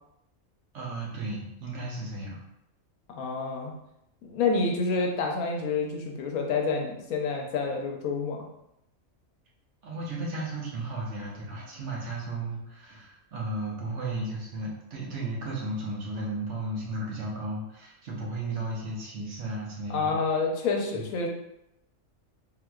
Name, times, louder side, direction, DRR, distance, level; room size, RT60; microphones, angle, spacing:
voice 1, 0.7-2.4 9.8-20.1 20.9-21.0, right 2 dB, 60° right, -3 dB, 1.1 m, -34 dB
voice 2, 3.1-3.7 4.2-8.5 19.9-21.3, left 4 dB, 85° left, 2 dB, 1.1 m, -28 dB
3.7 x 2.9 x 2.3 m, 0.81 s
omnidirectional pair, 1.4 m